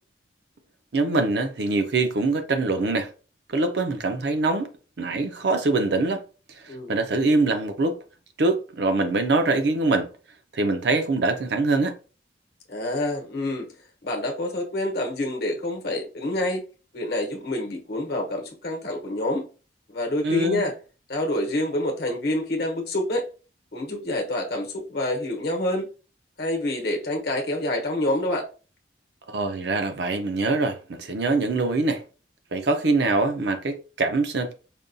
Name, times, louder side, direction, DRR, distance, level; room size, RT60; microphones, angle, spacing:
voice 1, 0.9-3.1 3.5-4.7 5.0-6.2 6.6-8.0 8.4-10.1 10.5-12.0 20.2-20.6 29.3-32.0 32.5-34.5, right 3 dB, 60° right, 0.5 m, -23 dB
voice 2, 6.7-7.0 12.7-13.7 14.0-16.6 16.9-19.4 19.9-20.7 21.1-23.3 23.7-25.9 26.4-28.5, left 1 dB, 60° left, 0.9 m, -27 dB
5.1 x 2.2 x 2.6 m
head